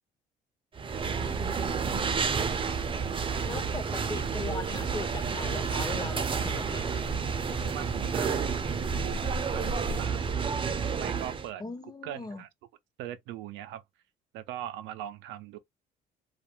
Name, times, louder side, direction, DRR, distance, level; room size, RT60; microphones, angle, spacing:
sound 1, 0.8-11.5, right 5 dB, 30° right, 0.5 m, -30 dB
voice 1, 1.3-2.5 3.4-7.0 11.6-12.4, left 3 dB, 20° left, 0.6 m, -40 dB
voice 2, 7.6-10.3 11.0-11.6 12.0-12.5 13.0-13.8 14.3-15.6, right 12 dB, 90° right, 0.5 m, -40 dB
2.4 x 2.1 x 2.9 m
cardioid pair, 85°, 19 cm